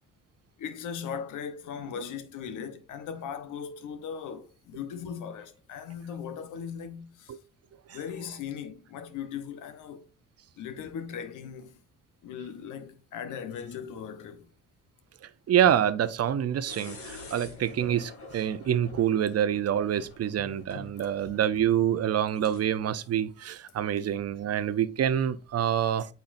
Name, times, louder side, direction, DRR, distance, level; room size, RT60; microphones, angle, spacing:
voice 1, 0.6-7.4 7.9-10.1 10.6-11.8 12.2-14.5 21.0-21.1, left 7 dB, 85° left, 1.1 m, -38 dB
voice 2, 15.5-26.1, right 10 dB, 55° right, 0.7 m, -26 dB
sound 1, 16.7-22.6, left 3 dB, 45° left, 2.3 m, -47 dB
8.7 x 5.5 x 2.6 m
cardioid pair, 90°, 30 cm